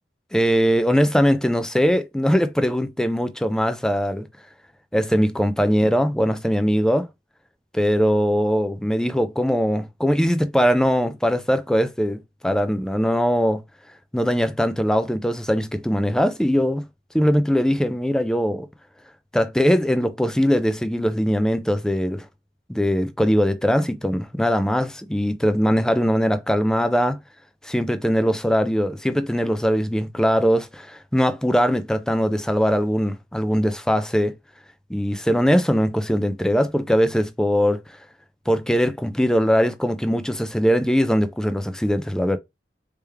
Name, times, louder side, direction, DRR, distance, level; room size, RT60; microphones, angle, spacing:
voice 1, 0.3-4.3 4.9-7.1 7.7-13.6 14.1-16.8 17.1-18.7 19.3-22.3 22.7-27.2 27.6-34.3 34.9-37.8 38.5-42.4, equal, 5° left, 0.3 m, -21 dB
3.4 x 3.1 x 3.3 m
head